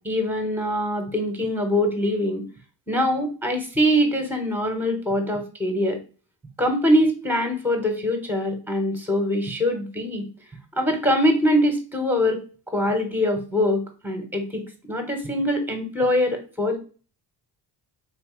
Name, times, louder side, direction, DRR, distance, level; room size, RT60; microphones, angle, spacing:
voice 1, 0.0-2.4 2.9-6.0 6.6-10.2 10.8-12.4 12.7-14.6 14.9-16.8, equal, 5° right, 4 dB, 1.4 m, -23 dB
4.0 x 3.1 x 3.2 m, 0.37 s
cardioid pair, 85°, 43 cm